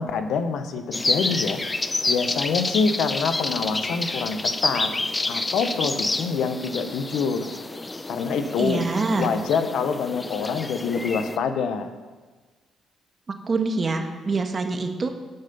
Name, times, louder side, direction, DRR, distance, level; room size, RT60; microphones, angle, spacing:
voice 1, 0.0-1.6 2.1-4.9 5.3-7.5 8.1-8.8 9.2-11.9, left 5 dB, 75° left, 8 dB, 1.0 m, -26 dB
sound 1, 0.9-11.4, left 2 dB, 20° left, 0.6 m, -29 dB
voice 2, 8.6-9.3 13.5-15.1, right 3 dB, 35° right, 5 dB, 1.5 m, -25 dB
12.5 x 8.0 x 5.5 m, 1.4 s
cardioid pair, 90°, 0 cm